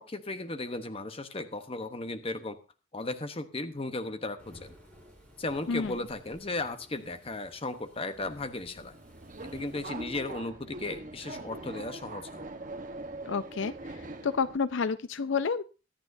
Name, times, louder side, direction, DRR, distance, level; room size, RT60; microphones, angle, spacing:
voice 1, 0.0-2.6 2.9-4.7 5.4-8.9 9.4-12.4, left 2 dB, 30° left, 9 dB, 0.9 m, -36 dB
Thunderstorm / Rain, 4.4-9.8, equal, 5° left, 7.1 m, -55 dB
Subway metro underground, 8.9-14.6, right 2 dB, 40° right, 1.1 m, -42 dB
voice 2, 13.3-15.6, left 5 dB, 65° left, 15 dB, 0.5 m, -30 dB
23.5 x 8.8 x 2.7 m, 0.31 s
head